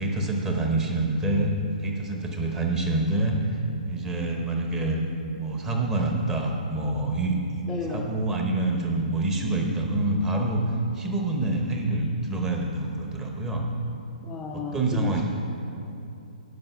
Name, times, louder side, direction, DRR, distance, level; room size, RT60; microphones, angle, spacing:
voice 1, 0.0-3.6 3.9-5.0 5.4-7.4 7.9-10.6 10.9-13.6 14.5-15.2, right 2 dB, 10° right, 1 dB, 0.9 m, -26 dB
voice 2, 7.7-8.1 14.2-15.2, left 5 dB, 10° left, -3 dB, 0.5 m, -33 dB
9.5 x 5.3 x 6.7 m, 2.7 s
hypercardioid pair, 155°, 5 cm